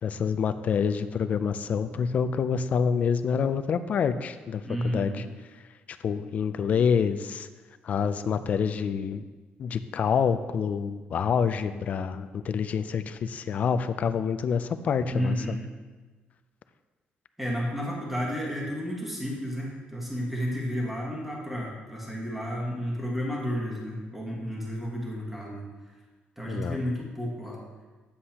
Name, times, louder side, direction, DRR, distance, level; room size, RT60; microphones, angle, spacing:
voice 1, 0.0-5.2 6.0-7.5 7.8-9.2 9.6-15.6 26.5-26.8, left 6 dB, 40° left, 11 dB, 0.4 m, -27 dB
voice 2, 4.6-5.2 15.1-15.6 17.4-25.6 26.4-27.6, equal, 5° right, -3 dB, 1.5 m, -32 dB
9.7 x 7.5 x 2.9 m, 1.3 s
cardioid pair, 175°, 4 cm